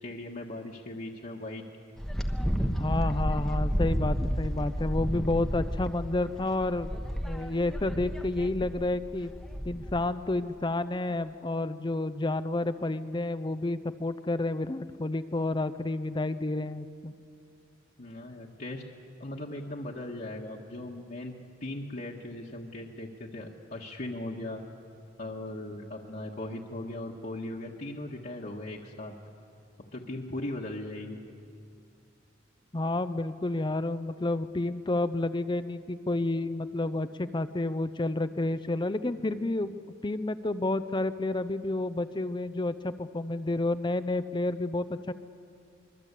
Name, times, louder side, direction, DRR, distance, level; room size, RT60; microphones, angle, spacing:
voice 1, 0.0-1.6 18.0-18.8 19.2-21.3 21.6-24.6 25.2-29.1 29.8-31.2, left 1 dB, 50° left, -3 dB, 1.7 m, -38 dB
Wind, 2.0-10.1, equal, ahead, 1.1 m, -31 dB
voice 2, 2.7-6.9 7.2-9.3 9.7-17.1 32.7-39.8 40.0-45.0, left 2 dB, 25° left, 12 dB, 0.6 m, -30 dB
25.0 x 22.5 x 8.4 m, 2.4 s
head